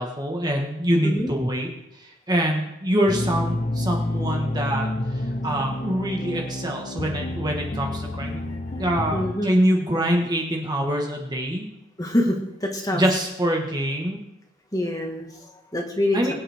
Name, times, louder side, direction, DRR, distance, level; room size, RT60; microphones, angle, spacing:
voice 1, 0.0-1.7 2.0-8.5 8.8-11.7 12.9-14.2 16.1-16.3, equal, 20° right, 0 dB, 1.4 m, -25 dB
sound 1, 3.1-9.3, left 1 dB, 35° left, 0.9 m, -29 dB
voice 2, 9.1-9.5 12.0-13.0 14.7-16.3, left 1 dB, 15° left, 1 dB, 1.7 m, -26 dB
21.5 x 9.0 x 3.6 m, 0.90 s
head